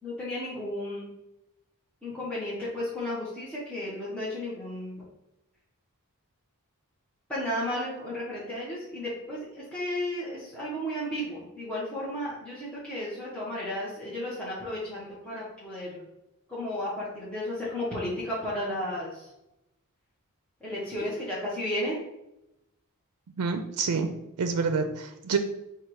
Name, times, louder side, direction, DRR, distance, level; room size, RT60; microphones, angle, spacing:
voice 1, 0.0-1.1 2.0-5.0 7.3-16.1 16.5-19.3 20.6-22.0, left 1 dB, 5° left, -8 dB, 1.0 m, -33 dB
voice 2, 23.4-24.1 24.4-25.4, right 5 dB, 80° right, 7 dB, 0.4 m, -27 dB
4.5 x 2.3 x 4.7 m, 0.90 s
head